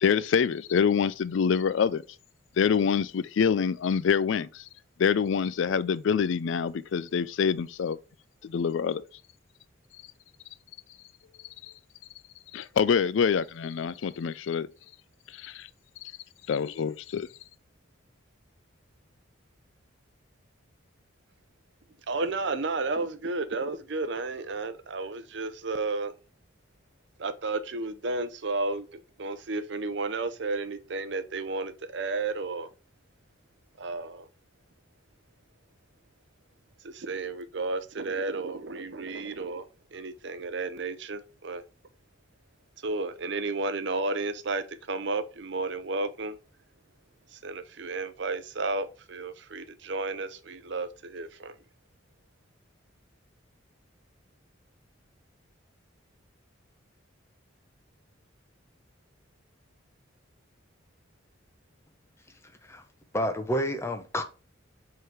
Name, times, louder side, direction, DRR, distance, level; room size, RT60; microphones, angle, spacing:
voice 1, 0.0-2.0 2.6-4.6 5.0-8.0 8.4-9.0 12.5-14.7 15.4-15.7 16.5-17.3, left 6 dB, 70° left, 0.4 m, -26 dB
voice 2, 22.1-26.1 27.2-32.7 33.8-34.3 36.8-41.6 42.8-46.4 47.3-51.5, right 3 dB, 60° right, 0.6 m, -32 dB
voice 3, 63.1-64.2, equal, 15° left, 0.8 m, -29 dB
5.4 x 3.8 x 4.7 m
head